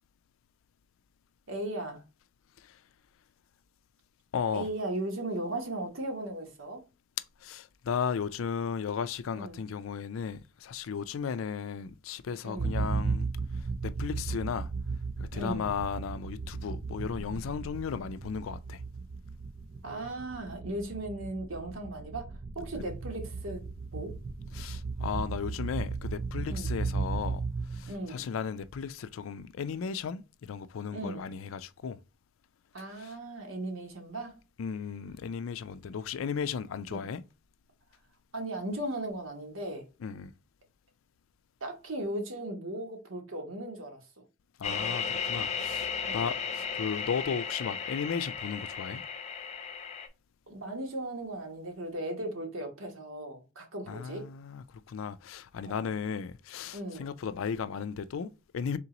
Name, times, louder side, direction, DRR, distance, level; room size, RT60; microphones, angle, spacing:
voice 1, 1.5-2.0 4.5-6.8 9.3-9.6 12.4-12.8 15.3-15.7 19.8-22.3 22.5-23.6 23.9-24.2 26.5-26.7 27.9-28.3 30.9-31.3 32.7-34.4 36.9-37.0 38.3-39.9 41.6-44.0 46.0-46.3 50.5-54.2 55.7-55.9 56.7-57.1, right 1 dB, 80° right, 1.3 m, -37 dB
voice 2, 4.3-4.7 7.4-13.3 13.8-14.7 15.2-18.8 24.5-27.4 27.7-32.0 33.0-33.1 34.6-37.2 40.0-40.3 44.6-49.0 53.9-58.8, left 6 dB, 80° left, 0.4 m, -35 dB
sound 1, 12.6-28.2, right 4 dB, 40° right, 0.4 m, -35 dB
sound 2, 44.6-50.1, left 6 dB, 35° left, 0.6 m, -35 dB
3.8 x 2.9 x 3.8 m
head